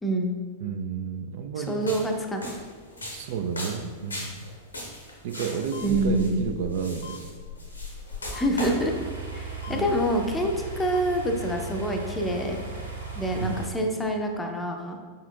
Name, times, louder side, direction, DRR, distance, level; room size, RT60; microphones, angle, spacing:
voice 1, 0.0-0.4 1.6-2.5 5.8-6.5 8.3-8.9 9.3-12.6 13.1-15.0, right 1 dB, 10° left, 2 dB, 0.6 m, -26 dB
voice 2, 0.6-1.9 3.1-4.5 5.2-7.3 9.7-10.0 13.4-13.7, right 6 dB, 55° right, 5 dB, 0.3 m, -32 dB
sound 1, 1.7-8.8, left 2 dB, 80° left, 0.9 m, -37 dB
sound 2, 5.7-5.9 7.0-7.2 8.3-8.5 9.6-9.8 10.9-11.0, left 6 dB, 55° left, 0.3 m, -41 dB
sound 3, 8.6-13.6, right 4 dB, 85° right, 0.8 m, -37 dB
5.0 x 4.2 x 2.4 m, 1.5 s
figure-of-eight pair, 90°, 0 cm